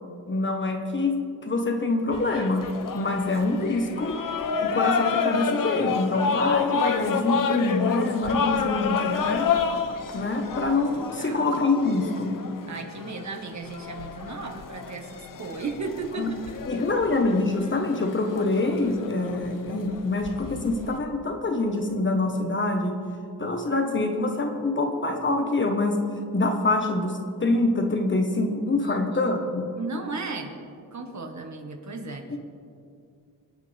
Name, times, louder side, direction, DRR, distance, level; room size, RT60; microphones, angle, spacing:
voice 1, 0.3-4.2 4.6-9.5 10.1-12.4 16.2-16.3 16.7-23.0 23.4-29.7, left 2 dB, 30° left, 4 dB, 1.4 m, -25 dB
sound 1, 2.1-21.0, left 6 dB, 55° left, 1.0 m, -30 dB
voice 2, 8.3-8.8 11.2-11.5 12.7-16.3 28.8-29.3 29.7-30.5 30.9-32.4, right 3 dB, 45° right, 4 dB, 1.6 m, -35 dB
26.0 x 8.8 x 3.5 m, 2.4 s
cardioid pair, 110°, 39 cm